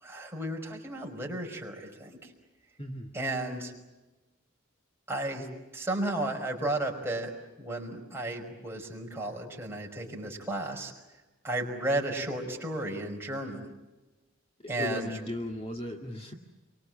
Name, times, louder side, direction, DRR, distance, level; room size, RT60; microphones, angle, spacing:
voice 1, 0.0-2.3 3.1-3.7 5.1-5.5 5.7-7.3 7.6-10.9 11.4-13.7 14.7-15.1, right 1 dB, 10° right, 0 dB, 5.2 m, -33 dB
voice 2, 2.8-3.1 14.6-16.3, left 1 dB, 30° left, 2 dB, 2.1 m, -36 dB
29.0 x 24.5 x 7.6 m, 1.1 s
head